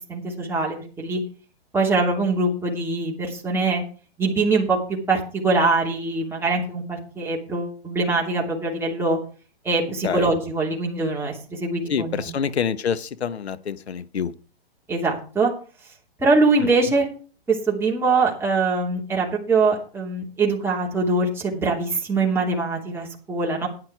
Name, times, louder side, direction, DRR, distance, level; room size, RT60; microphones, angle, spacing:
voice 1, 0.1-1.2 1.7-3.8 4.2-9.2 9.6-12.3 14.9-15.5 16.2-17.1 17.5-23.7, right 3 dB, 5° right, -3 dB, 3.0 m, -23 dB
voice 2, 11.9-14.3, left 7 dB, 85° left, 15 dB, 1.1 m, -26 dB
11.0 x 9.7 x 4.8 m, 0.38 s
hypercardioid pair, 135°, 32 cm